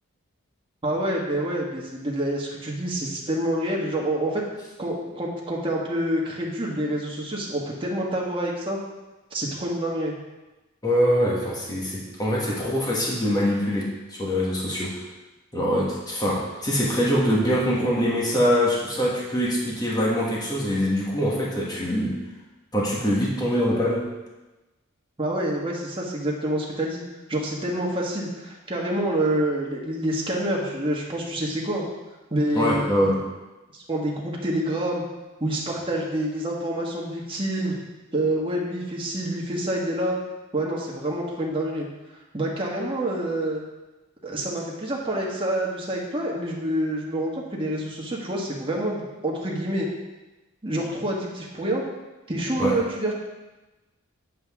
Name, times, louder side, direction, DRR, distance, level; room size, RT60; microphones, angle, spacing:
voice 1, 0.8-4.4 4.8-8.8 9.3-10.1 25.2-27.0 27.3-31.8 32.3-33.1 33.7-35.0 35.4-37.8 38.1-40.2 40.5-41.9 42.3-43.6 44.2-49.9 50.6-51.8 52.3-53.1, right 1 dB, 25° right, -3 dB, 1.6 m, -27 dB
voice 2, 10.8-15.0 15.5-22.2 22.7-24.1 32.5-33.2 52.6-52.8, equal, 20° left, -4 dB, 1.6 m, -23 dB
9.1 x 7.6 x 3.7 m, 1.1 s
head